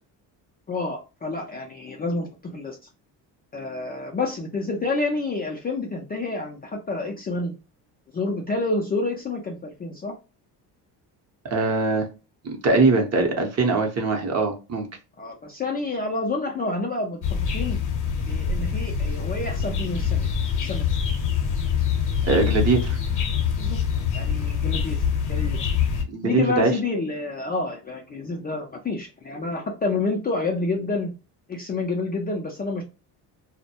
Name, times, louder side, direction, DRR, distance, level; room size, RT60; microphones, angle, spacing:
voice 1, 0.7-2.8 3.5-7.5 8.1-10.1 15.2-17.8 18.3-20.3 20.6-20.9 23.6-23.8 24.1-25.6 26.2-31.1 31.5-32.8, left 3 dB, 25° left, 0 dB, 0.3 m, -28 dB
voice 2, 11.5-12.1 12.4-14.9 22.3-23.0 26.1-26.7, right 3 dB, 35° right, 4 dB, 0.7 m, -22 dB
sound 1, 17.2-26.0, left 7 dB, 45° left, 0.8 m, -25 dB
2.2 x 2.1 x 2.7 m, 0.30 s
cardioid pair, 100°, 43 cm